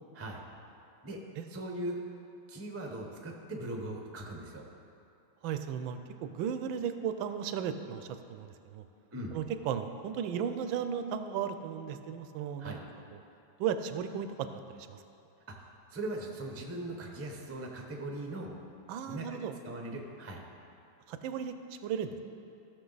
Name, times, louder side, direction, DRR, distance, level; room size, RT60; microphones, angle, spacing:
voice 1, 1.5-2.0 2.5-4.6 9.1-9.4 12.6-12.8 15.6-18.5 19.1-20.4, right 1 dB, 20° right, 1 dB, 0.3 m, -40 dB
voice 2, 5.4-8.8 9.3-12.8 13.1-13.2 13.6-14.5 14.8-15.0 18.9-19.5 21.1-21.5 21.8-22.2, right 8 dB, 90° right, 9 dB, 1.4 m, -35 dB
14.5 x 6.4 x 4.0 m, 2.7 s
omnidirectional pair, 2.1 m